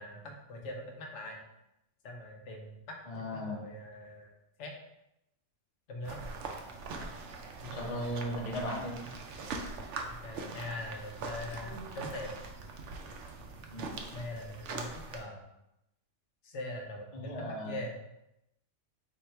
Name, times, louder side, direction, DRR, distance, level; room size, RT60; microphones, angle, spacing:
voice 1, 0.0-1.4 2.0-4.3 4.6-4.7 5.9-6.2 7.7-8.0 10.1-12.4 14.1-15.4 16.4-17.9, left 1 dB, 75° left, 2 dB, 0.9 m, -42 dB
voice 2, 3.1-3.7 7.6-9.0 13.7-14.0 17.1-17.8, equal, 35° left, -1 dB, 0.7 m, -37 dB
sound 1, 6.0-15.2, right 4 dB, 75° right, 0.9 m, -42 dB
3.7 x 2.7 x 4.4 m, 0.86 s
omnidirectional pair, 1.3 m